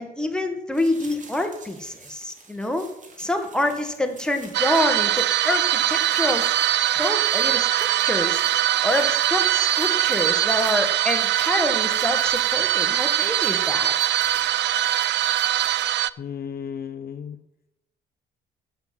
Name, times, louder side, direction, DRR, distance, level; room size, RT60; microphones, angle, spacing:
voice 1, 0.0-2.9 3.2-6.5 6.9-8.4 8.8-13.9, left 1 dB, 5° left, 4 dB, 1.8 m, -26 dB
sound 1, 0.7-15.9, right 3 dB, 40° right, 2.8 m, -48 dB
sound 2, 4.5-16.1, right 12 dB, 65° right, 0.4 m, -22 dB
voice 2, 16.2-17.4, left 7 dB, 50° left, 9 dB, 0.9 m, -34 dB
10.5 x 7.1 x 7.7 m, 0.87 s
cardioid pair, 90°, 20 cm